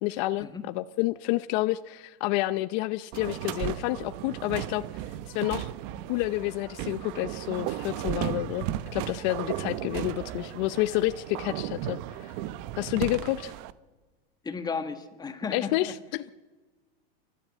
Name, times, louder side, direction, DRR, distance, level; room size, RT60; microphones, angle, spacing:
voice 1, 0.0-4.8 5.3-5.7 6.1-8.7 8.9-12.3 12.8-13.5 15.5-16.3, left 17 dB, 45° left, 13 dB, 0.7 m, -29 dB
sound 1, 3.1-13.7, right 13 dB, 45° right, 0.8 m, -35 dB
voice 2, 14.4-15.9, left 5 dB, 15° left, 9 dB, 1.5 m, -34 dB
29.5 x 13.0 x 7.5 m, 1.3 s
supercardioid pair, 145°, 31 cm